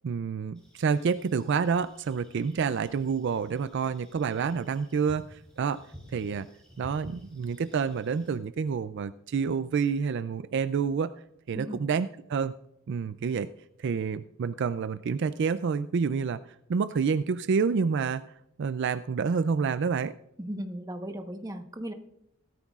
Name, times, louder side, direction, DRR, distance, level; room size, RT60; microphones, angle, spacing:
voice 1, 0.0-5.8 6.1-6.5 6.8-11.1 11.5-12.5 12.9-13.5 13.8-16.4 16.7-18.2 18.6-20.1, right 5 dB, 55° right, 13 dB, 0.4 m, -28 dB
sound 1, 0.6-8.3, equal, 5° left, 3.7 m, -52 dB
voice 2, 11.5-11.9 20.4-21.9, equal, 15° right, 5 dB, 1.1 m, -36 dB
18.0 x 13.0 x 2.4 m, 0.78 s
head